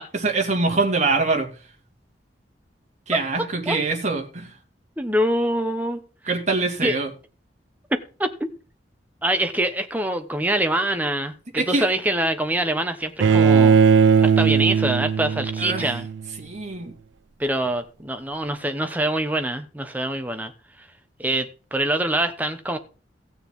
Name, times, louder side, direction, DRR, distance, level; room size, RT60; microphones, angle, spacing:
voice 1, 0.2-1.5 3.1-4.5 6.3-7.1 11.5-11.9 15.6-15.9 16.4-16.9, right 3 dB, 40° right, 2.2 m, -24 dB
voice 2, 3.4-3.8 5.0-6.0 6.8-7.0 7.9-8.5 9.2-13.8 14.2-16.1 17.4-20.5 20.8-20.9 21.2-22.8, right 1 dB, 10° right, 1.0 m, -25 dB
Bowed string instrument, 13.2-16.3, right 6 dB, 80° right, 0.4 m, -18 dB
16.5 x 6.7 x 3.7 m
head